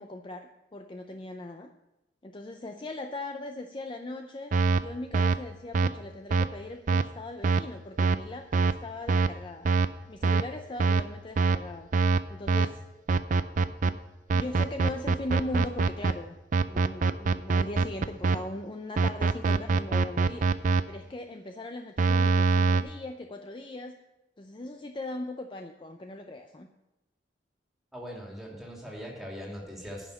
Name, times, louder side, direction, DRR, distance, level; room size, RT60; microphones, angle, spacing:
voice 1, 0.0-1.7 2.2-11.9 12.3-12.8 14.3-16.4 16.7-24.0 24.4-26.7, left 2 dB, 30° left, 5 dB, 0.5 m, -39 dB
sound 1, 4.5-4.8 5.1-5.4 5.7-5.9 6.3-6.5 6.9-7.0 7.4-7.6 8.0-8.2 8.5-8.7 9.1-9.3 9.7-9.9 10.2-10.4 10.8-11.0 11.4-11.6 11.9-12.2 12.5-12.7 13.1-13.9 14.3-16.1 16.5-18.4 19.0-20.8 22.0-22.8, right 4 dB, 45° right, 0.5 m, -23 dB
voice 2, 27.9-30.1, equal, ahead, -2 dB, 2.5 m, -41 dB
10.0 x 5.7 x 7.7 m, 0.95 s
head